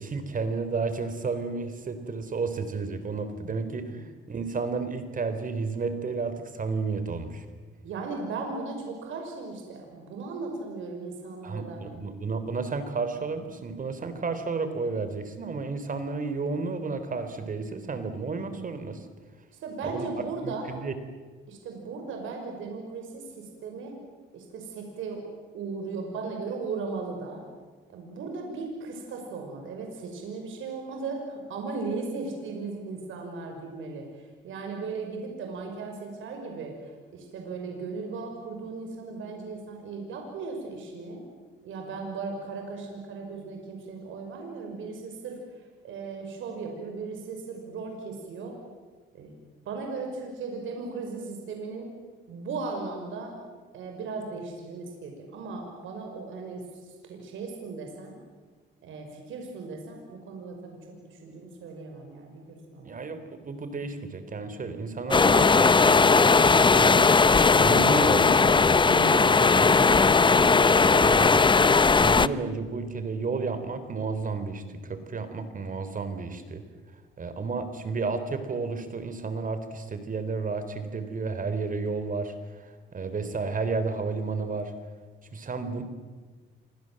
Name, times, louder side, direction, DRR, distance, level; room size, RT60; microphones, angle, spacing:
voice 1, 0.0-7.5 11.4-19.0 19.8-20.1 20.4-20.9 62.8-67.2 67.5-71.5 72.0-76.6 77.2-84.7 85.3-85.8, right 4 dB, 45° right, 10 dB, 3.6 m, -32 dB
voice 2, 7.8-11.8 19.6-20.7 21.5-24.0 24.3-25.2 25.5-27.4 27.9-41.2 41.6-45.4 45.8-48.6 49.1-49.3 49.7-51.9 52.3-53.4 53.7-58.2 58.8-60.8 61.1-62.9, right 4 dB, 80° right, 2 dB, 5.9 m, -37 dB
sound 1, 65.1-72.3, left 4 dB, 25° left, 0.8 m, -18 dB
28.5 x 24.5 x 7.7 m, 1.4 s
cardioid pair, 90°, 20 cm